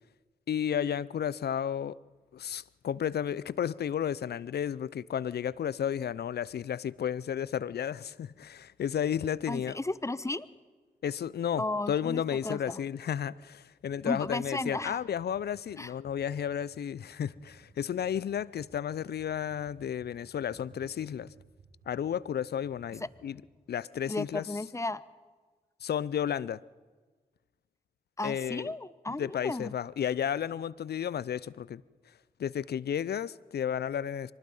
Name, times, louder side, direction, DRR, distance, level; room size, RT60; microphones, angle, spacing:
voice 1, 0.5-2.0 2.3-9.8 11.0-21.3 21.9-23.4 23.7-24.5 25.8-26.6 28.2-28.7 29.2-31.8 32.4-34.3, left 9 dB, 75° left, 0.6 m, -32 dB
voice 2, 9.5-10.5 11.6-12.8 14.0-15.0 15.8-15.9 24.1-25.0 28.2-29.7, left 2 dB, 15° left, 1.0 m, -34 dB
Computer keyboard, 13.9-23.3, right 4 dB, 80° right, 6.9 m, -60 dB
24.5 x 20.0 x 5.5 m
supercardioid pair, 40°, 17 cm